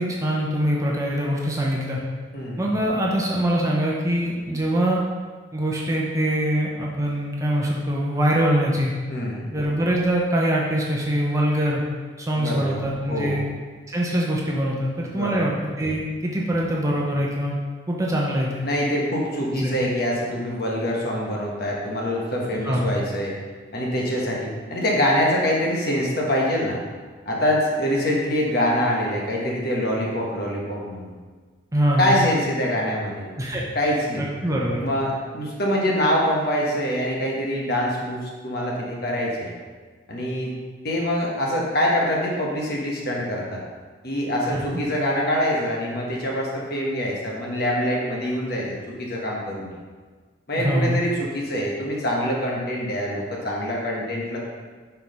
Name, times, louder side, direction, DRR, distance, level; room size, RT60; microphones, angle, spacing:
voice 1, 0.0-2.0 2.6-5.0 5.5-8.9 9.5-11.8 12.2-13.4 13.9-17.6 17.9-18.6 19.5-19.8 22.7-22.8 31.7-32.1 33.4-33.7 34.2-34.8 44.5-44.6 50.6-50.9, right 1 dB, 15° right, -3 dB, 0.8 m, -23 dB
voice 2, 2.3-2.6 9.1-9.5 12.3-12.8 13.1-13.4 15.1-15.5 18.6-23.3 23.7-26.8 27.2-31.1 32.0-33.3 33.7-34.3 34.8-39.5 40.1-40.5 40.8-43.6 44.0-49.8 50.5-54.5, equal, 50° left, -3 dB, 1.4 m, -25 dB
5.7 x 4.6 x 5.4 m, 1.4 s
head